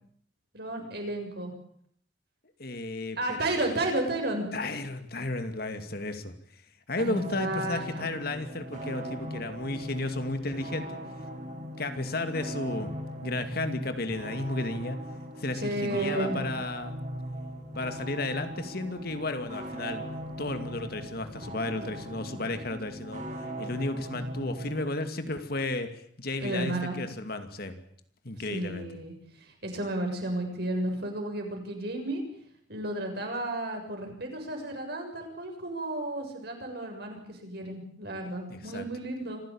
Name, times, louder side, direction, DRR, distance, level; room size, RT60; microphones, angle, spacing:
voice 1, 0.5-1.5 3.2-4.5 7.0-8.1 15.5-16.4 26.4-27.0 28.5-32.2 32.7-39.4, right 1 dB, 55° right, 3 dB, 7.0 m, -32 dB
voice 2, 2.6-3.5 4.5-6.3 6.9-11.0 11.8-12.9 13.2-15.0 15.4-17.0 17.7-20.0 20.4-23.3 23.6-27.8 28.2-28.9 38.5-38.8, left 2 dB, 50° left, 9 dB, 2.4 m, -33 dB
sound 1, 7.0-24.9, right 1 dB, 40° right, 5.8 m, -39 dB
26.5 x 16.0 x 8.8 m, 0.65 s
head